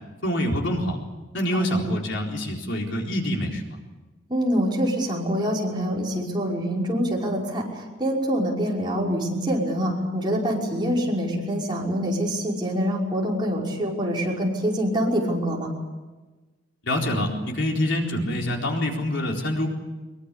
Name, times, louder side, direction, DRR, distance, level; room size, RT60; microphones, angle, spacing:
voice 1, 0.2-1.0 1.3-3.8 16.8-19.7, left 1 dB, 65° left, 1 dB, 4.2 m, -26 dB
voice 2, 1.5-1.8 4.3-15.7, equal, 20° right, -3 dB, 5.6 m, -25 dB
24.0 x 23.0 x 8.5 m, 1.2 s
head